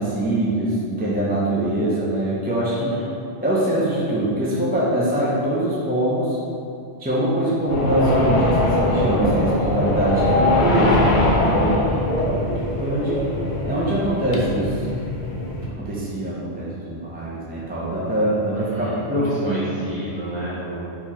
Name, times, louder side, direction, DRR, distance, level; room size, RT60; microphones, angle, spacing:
voice 1, 0.0-3.0 3.4-6.4 7.0-11.0 11.5-11.8 12.8-13.2 13.6-14.9 15.8-19.6, right 1 dB, 15° right, -7 dB, 0.4 m, -23 dB
voice 2, 2.7-3.1 11.7-12.1 18.7-20.8, equal, 40° right, -10 dB, 1.5 m, -32 dB
sound 1, 7.7-15.7, left 1 dB, 55° left, 0.6 m, -21 dB
4.1 x 3.0 x 4.2 m, 2.6 s
omnidirectional pair, 1.1 m